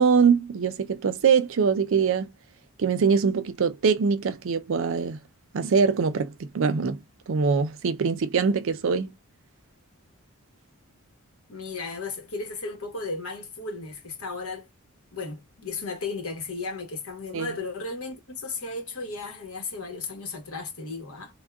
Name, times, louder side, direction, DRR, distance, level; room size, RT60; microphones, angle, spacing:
voice 1, 0.0-2.3 2.8-5.2 5.5-9.1 17.3-17.5, right 5 dB, 65° right, 0.4 m, -23 dB
voice 2, 11.5-14.7 15.1-21.3, left 3 dB, 80° left, 1.1 m, -35 dB
3.6 x 2.2 x 2.2 m
head